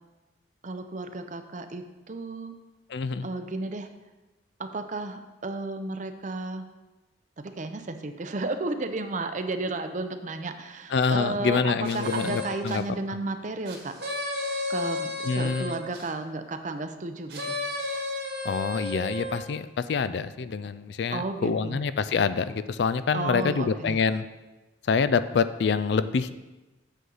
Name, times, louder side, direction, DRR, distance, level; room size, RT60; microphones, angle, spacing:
voice 1, 0.6-2.6 3.2-3.9 4.6-6.7 7.4-14.0 14.7-17.6 21.1-21.8 23.1-24.0, right 3 dB, 40° right, 8 dB, 0.6 m, -33 dB
voice 2, 2.9-3.3 10.9-12.8 15.3-15.7 18.4-24.2 24.9-26.3, left 5 dB, 65° left, 13 dB, 0.4 m, -26 dB
sound 1, 11.8-12.8 13.6-16.1 17.3-19.5, left 2 dB, 70° right, 2.1 m, -33 dB
8.2 x 7.7 x 3.9 m, 1.1 s
head